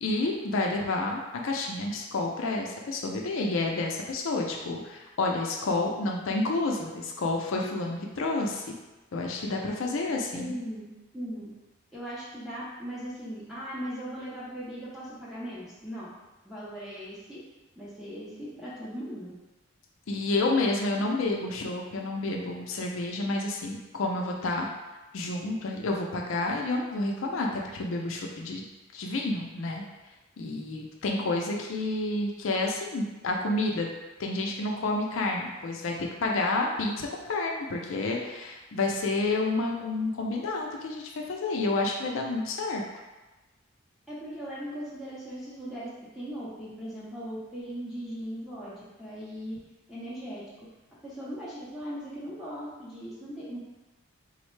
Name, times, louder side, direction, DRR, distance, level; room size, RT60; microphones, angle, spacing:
voice 1, 0.0-8.6 9.1-10.5 20.1-24.7 25.1-28.6 28.9-29.8 30.4-33.9 34.2-42.8, left 2 dB, 70° left, 0 dB, 0.4 m, -29 dB
voice 2, 10.3-10.9 11.1-11.5 11.9-16.1 16.4-17.4 17.8-19.3 44.1-49.6 49.9-50.4 51.0-53.6, equal, ahead, -9 dB, 0.6 m, -38 dB
3.8 x 2.1 x 3.1 m, 1.1 s
head